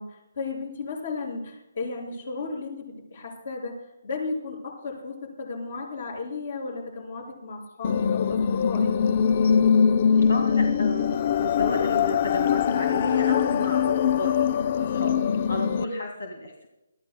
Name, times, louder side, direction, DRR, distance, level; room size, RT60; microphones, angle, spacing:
voice 1, 0.0-3.7 4.0-8.9 15.5-16.0, left 4 dB, 50° left, 1 dB, 6.1 m, -34 dB
sound 1, 7.8-15.8, left 7 dB, 35° left, 0.4 m, -22 dB
voice 2, 10.3-14.5 14.8-15.2 15.5-16.7, left 1 dB, 80° left, 2 dB, 2.2 m, -31 dB
23.0 x 14.0 x 2.3 m, 0.90 s
hypercardioid pair, 165°, 0 cm